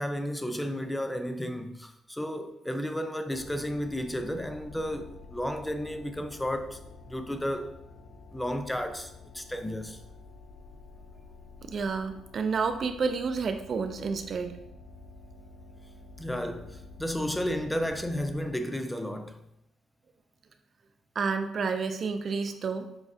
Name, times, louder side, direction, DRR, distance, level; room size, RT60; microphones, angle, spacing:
voice 1, 0.0-6.8 7.1-7.8 8.3-10.0 16.2-19.4, equal, 5° left, 0.4 m, -33 dB
sound 1, 3.3-18.5, left 3 dB, 70° left, 0.6 m, -49 dB
voice 2, 11.6-14.5 21.2-22.9, right 5 dB, 50° right, 0.4 m, -30 dB
6.9 x 2.3 x 2.7 m
cardioid pair, 90°, 0 cm